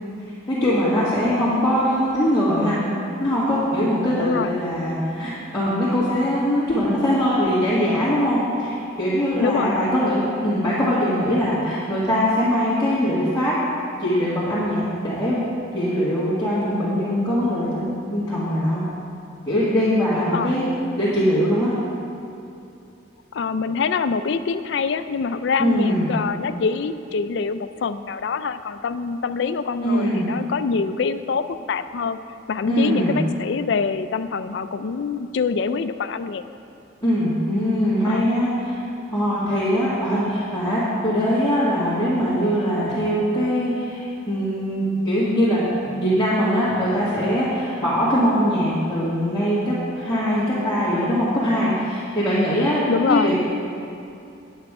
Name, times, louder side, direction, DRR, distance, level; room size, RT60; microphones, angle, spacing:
voice 1, 0.5-2.8 3.2-13.6 14.0-15.4 15.7-17.8 18.1-18.8 19.5-20.7 21.0-21.8 25.6-26.1 29.8-30.3 32.7-33.2 37.0-38.8 39.1-53.4, equal, 15° left, -12 dB, 1.7 m, -21 dB
voice 2, 4.1-4.6 9.4-9.9 20.3-20.6 23.3-32.2 32.5-36.4 38.0-38.3 52.9-53.3, left 5 dB, 60° left, 11 dB, 0.3 m, -25 dB
9.6 x 8.2 x 4.8 m, 2.7 s
head